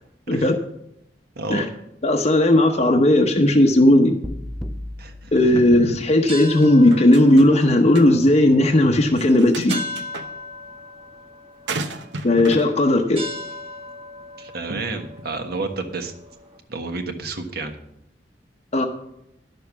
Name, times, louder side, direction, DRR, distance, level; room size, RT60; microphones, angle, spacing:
voice 1, 1.3-1.7 5.0-5.6 14.4-16.1 16.7-17.8, right 3 dB, 60° right, 5 dB, 1.3 m, -30 dB
voice 2, 2.0-4.2 5.3-9.8 12.2-13.2 18.7-18.9, left 1 dB, 40° left, 2 dB, 0.8 m, -16 dB
sound 1, 4.2-6.3, left 1 dB, ahead, 0.5 m, -35 dB
sound 2, 6.1-16.6, left 1 dB, 30° right, 1.4 m, -38 dB
sound 3, 6.6-7.7 8.0-8.1 9.2-10.3 11.7-12.7, right 3 dB, 80° right, 1.0 m, -32 dB
10.5 x 6.7 x 7.1 m, 0.80 s
head